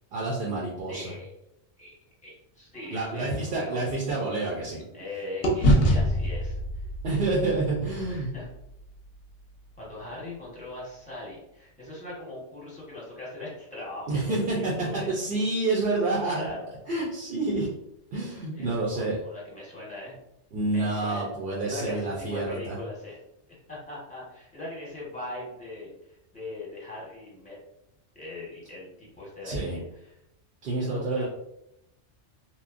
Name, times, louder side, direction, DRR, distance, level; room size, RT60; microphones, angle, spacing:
voice 1, 0.1-1.1 2.9-4.8 7.0-8.3 14.1-16.5 16.9-17.7 18.1-19.2 20.5-22.8 29.4-29.8 30.6-31.3, right 2 dB, 60° right, -4 dB, 0.7 m, -28 dB
voice 2, 0.9-1.3 1.8-2.0 2.2-3.8 4.9-6.6 8.1-8.5 9.8-15.1 16.0-16.6 18.5-20.1 20.7-21.3 21.6-23.2 23.7-27.6 28.1-30.2 30.7-31.3, left 2 dB, 5° left, -6 dB, 0.9 m, -40 dB
sound 1, 2.7-5.0 5.4-9.7, equal, 65° left, 0.7 m, -27 dB
2.9 x 2.0 x 2.4 m, 0.83 s
omnidirectional pair, 1.2 m